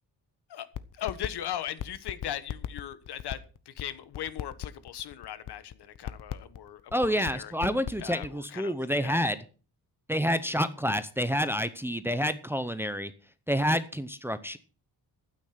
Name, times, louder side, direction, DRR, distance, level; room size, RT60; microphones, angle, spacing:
sound 1, 0.7-1.3 1.5-8.3, left 11 dB, 50° left, 0.9 m, -36 dB
voice 1, 0.9-3.4 3.7-7.5 8.0-9.3, left 11 dB, 75° left, 1.3 m, -38 dB
voice 2, 6.9-9.4 10.1-13.1 13.5-14.6, equal, 5° right, 0.6 m, -28 dB
12.0 x 9.4 x 5.8 m
wide cardioid pair, 160°, 40 cm